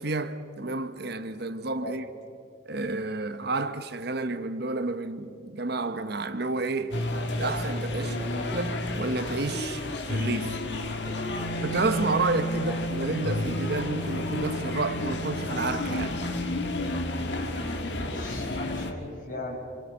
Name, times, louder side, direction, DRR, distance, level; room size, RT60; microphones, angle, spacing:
voice 1, 0.0-2.1 2.7-7.0 7.3-8.1 8.5-9.8 10.1-10.6 11.6-16.2, right 3 dB, 60° right, 1.1 m, -30 dB
sound 1, 6.9-18.9, left 2 dB, 65° left, 1.8 m, -32 dB
voice 2, 8.0-8.5 12.4-12.8 18.0-19.6, left 2 dB, 45° left, 6.4 m, -38 dB
Wind instrument woodwind instrument, 11.2-17.4, right 2 dB, 90° left, 5.1 m, -35 dB
27.0 x 26.5 x 5.6 m
head